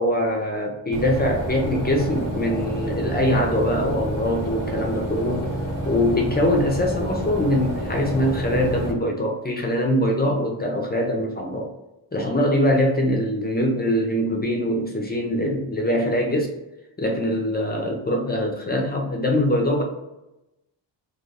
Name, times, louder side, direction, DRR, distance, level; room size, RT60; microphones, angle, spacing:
voice 1, 0.0-5.5 5.9-11.7 12.1-16.5 17.0-19.8, left 1 dB, 25° left, 1 dB, 0.4 m, -23 dB
sound 1, 0.9-8.9, right 1 dB, 30° right, 0.8 m, -29 dB
2.4 x 2.3 x 3.2 m, 0.96 s
wide cardioid pair, 165°, 45 cm